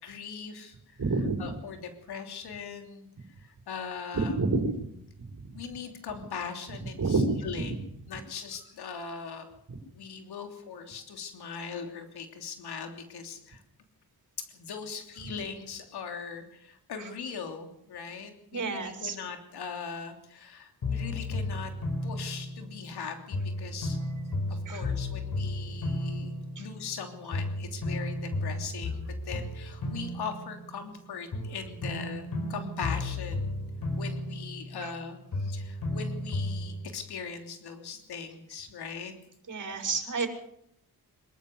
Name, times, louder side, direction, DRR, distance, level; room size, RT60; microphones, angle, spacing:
voice 1, 0.0-1.0 1.4-3.1 3.7-4.4 5.5-7.7 8.1-9.5 9.9-13.6 14.4-21.7 22.0-24.0 24.7-26.3 26.6-33.6 34.0-39.1, left 6 dB, 90° left, 5 dB, 3.2 m, -40 dB
voice 2, 1.0-1.4 4.1-4.7 7.0-7.3 7.5-7.6 18.5-19.2 24.7-24.8 26.6-26.7 34.8-34.9 39.5-40.3, right 3 dB, 50° right, 3 dB, 5.8 m, -28 dB
sound 1, 20.8-23.0 23.3-27.0 27.3-31.0 31.3-35.0 35.3-36.9, left 2 dB, 70° left, 5.8 m, -34 dB
26.0 x 14.0 x 8.0 m, 0.75 s
cardioid pair, 70°, 38 cm